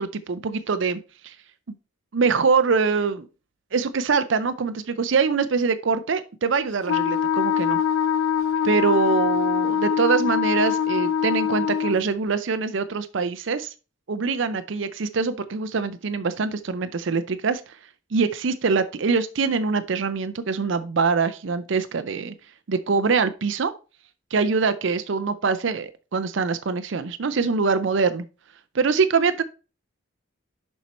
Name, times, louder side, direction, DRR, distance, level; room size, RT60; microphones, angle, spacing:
voice 1, 0.0-1.3 2.1-3.3 3.7-7.8 8.6-13.7 14.1-17.6 18.1-22.3 22.7-23.7 24.3-28.2 28.7-29.4, right 5 dB, 65° right, 0.5 m, -24 dB
Wind instrument woodwind instrument, 6.9-12.0, left 8 dB, 85° left, 0.5 m, -23 dB
7.3 x 5.5 x 4.2 m
head